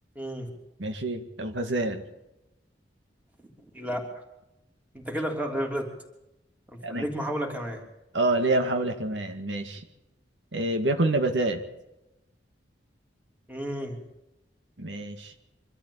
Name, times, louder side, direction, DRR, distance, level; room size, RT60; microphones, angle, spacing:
voice 1, 0.1-0.5 3.7-4.0 4.9-5.9 6.7-7.8 13.5-14.0, equal, 10° right, 2 dB, 3.3 m, -31 dB
voice 2, 0.8-2.0 6.8-7.1 8.1-9.8 10.5-11.6 14.8-15.3, right 2 dB, 90° right, 6 dB, 2.1 m, -27 dB
24.5 x 13.0 x 8.6 m, 0.92 s
head